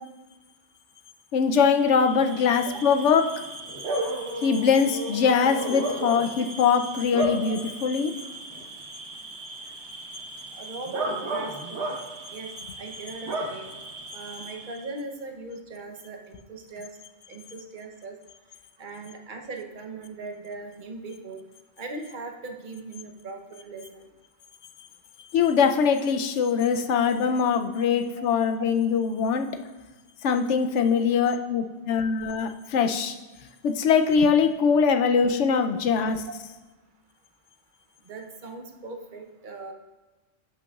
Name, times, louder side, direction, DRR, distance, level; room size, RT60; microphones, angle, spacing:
voice 1, 1.3-3.2 3.9-8.1 25.3-29.5 30.2-33.1 33.6-36.2, left 6 dB, 75° left, 7 dB, 0.9 m, -22 dB
Bark / Cricket, 1.6-14.9, right 2 dB, 65° right, 1.4 m, -34 dB
voice 2, 10.5-11.9 12.3-12.5 12.8-13.7 14.1-16.9 17.3-18.1 18.8-21.4 21.8-24.0 27.8-27.9 28.2-28.3 30.9-31.0 31.5-31.7 38.1-39.7, right 3 dB, 45° right, 4 dB, 0.9 m, -39 dB
11.0 x 6.0 x 2.3 m, 1.2 s
omnidirectional pair, 1.3 m